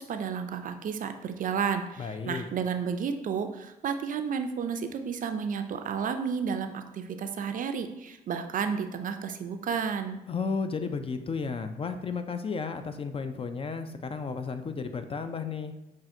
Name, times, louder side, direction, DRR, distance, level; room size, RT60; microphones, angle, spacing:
voice 1, 0.0-10.2, right 6 dB, 55° right, 7 dB, 0.4 m, -32 dB
voice 2, 2.0-2.4 10.3-15.7, left 5 dB, 35° left, 9 dB, 0.4 m, -33 dB
5.5 x 2.4 x 2.6 m, 0.93 s
supercardioid pair, 65°, 17 cm